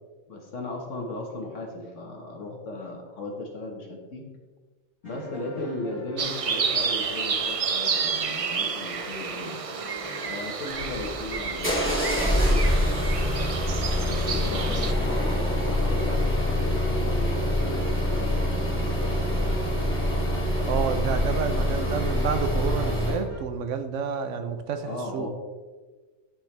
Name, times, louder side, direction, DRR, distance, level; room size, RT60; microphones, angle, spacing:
voice 1, 0.3-4.2 5.0-9.6 10.3-14.8 15.7-19.9 21.6-22.2 24.8-25.3, left 2 dB, 85° left, 1 dB, 1.7 m, -37 dB
sound 1, 5.0-23.4, left 1 dB, 30° left, 2.7 m, -42 dB
sound 2, 6.2-14.9, right 6 dB, 50° right, 0.4 m, -30 dB
sound 3, 10.7-23.2, left 1 dB, 10° left, 2.1 m, -25 dB
voice 2, 20.7-25.3, right 6 dB, 85° right, 9 dB, 1.0 m, -29 dB
11.5 x 5.6 x 3.3 m, 1.4 s
omnidirectional pair, 1.2 m